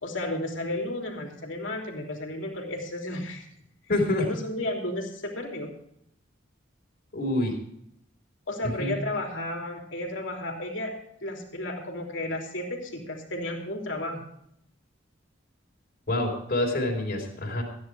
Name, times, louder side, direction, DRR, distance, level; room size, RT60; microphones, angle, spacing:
voice 1, 0.0-3.5 4.2-5.7 8.5-10.9 11.2-14.2, left 1 dB, 70° left, 1 dB, 3.2 m, -33 dB
voice 2, 3.9-4.3 7.1-7.6 8.6-8.9 16.1-17.6, left 1 dB, 50° left, -2 dB, 3.6 m, -26 dB
14.5 x 10.0 x 4.8 m, 0.72 s
head